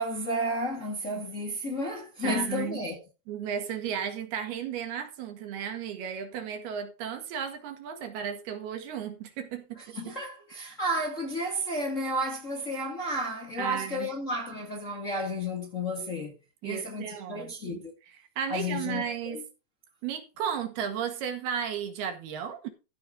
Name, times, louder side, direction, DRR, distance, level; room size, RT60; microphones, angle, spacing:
voice 1, 0.0-3.0 9.9-16.3 16.6-17.9 18.5-19.4, equal, 35° left, 1.3 m, -32 dB
voice 2, 2.2-2.8 3.3-10.1 13.6-14.1 16.6-19.4 20.0-22.7, right 8 dB, 90° right, 3.8 m, -34 dB
13.5 x 5.7 x 5.1 m
omnidirectional pair, 4.4 m